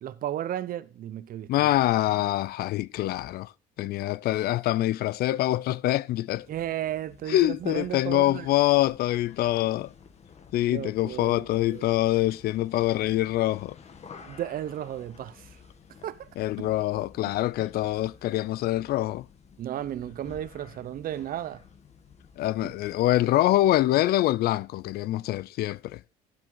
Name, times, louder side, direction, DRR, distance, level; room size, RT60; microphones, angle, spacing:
voice 1, 0.0-1.7 6.5-8.5 10.7-11.9 14.2-15.6 16.0-16.3 16.6-16.7 19.6-21.6 22.6-22.7, right 11 dB, 60° right, 0.8 m, -34 dB
voice 2, 1.5-3.5 3.8-6.5 7.3-9.9 10.5-13.8 16.4-19.3 22.4-26.0, left 15 dB, 65° left, 0.4 m, -25 dB
sound 1, 6.3-24.0, left 6 dB, 40° left, 1.5 m, -52 dB
12.0 x 7.6 x 3.9 m
cardioid pair, 110°, 17 cm